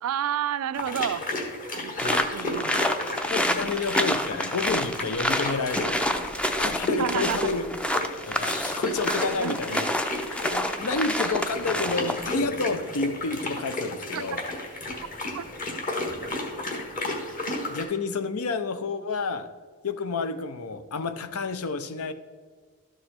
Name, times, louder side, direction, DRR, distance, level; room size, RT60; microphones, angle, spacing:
voice 1, 0.0-1.2 1.7-2.9 7.0-7.5 9.4-9.8 14.1-14.4 15.3-15.4, right 9 dB, 80° right, 16 dB, 0.3 m, -31 dB
sound 1, 0.7-17.8, left 2 dB, 40° left, 1.5 m, -33 dB
sound 2, 2.0-12.3, equal, 5° left, 0.4 m, -28 dB
voice 2, 3.3-6.2 6.6-7.6 8.3-9.9 10.5-14.4 17.7-19.5 19.8-22.1, left 4 dB, 80° left, 11 dB, 0.6 m, -30 dB
12.5 x 4.8 x 4.3 m, 1.6 s
head